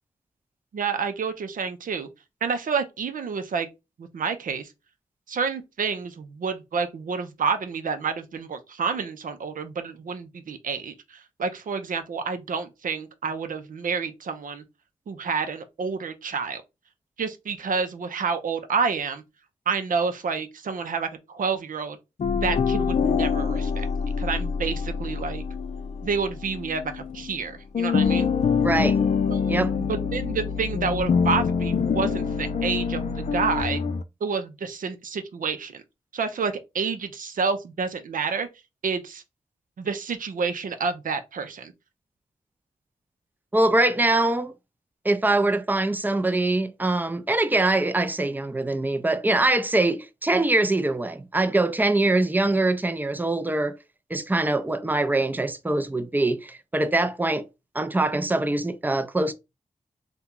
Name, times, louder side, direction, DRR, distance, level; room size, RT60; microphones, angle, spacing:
voice 1, 0.7-2.1 2.4-3.7 4.0-4.7 5.3-14.6 15.1-16.6 17.2-19.2 19.7-22.0 22.3-23.9 24.2-25.4 26.0-28.3 29.3-29.5 29.8-33.8 34.2-35.8 36.1-38.5 38.8-39.2 39.8-41.7, right 5 dB, 75° right, 0.6 m, -29 dB
sound 1, 22.2-27.4 27.7-34.0, left 6 dB, 55° left, 0.4 m, -25 dB
voice 2, 28.6-29.0 29.5-29.7 43.5-44.5 45.0-53.8 54.1-57.4 57.7-59.3, right 2 dB, 15° right, 0.5 m, -23 dB
2.8 x 2.2 x 3.7 m
cardioid pair, 45°, 14 cm